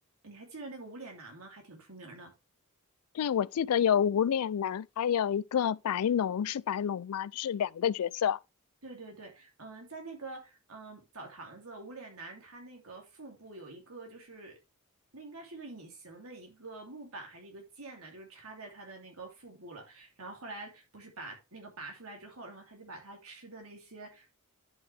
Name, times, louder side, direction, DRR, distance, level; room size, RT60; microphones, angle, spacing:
voice 1, 0.2-2.3 8.8-14.6 15.1-24.4, right 3 dB, 75° right, 2.9 m, -46 dB
voice 2, 3.1-8.4, left 8 dB, 85° left, 0.4 m, -28 dB
10.5 x 5.6 x 3.4 m
head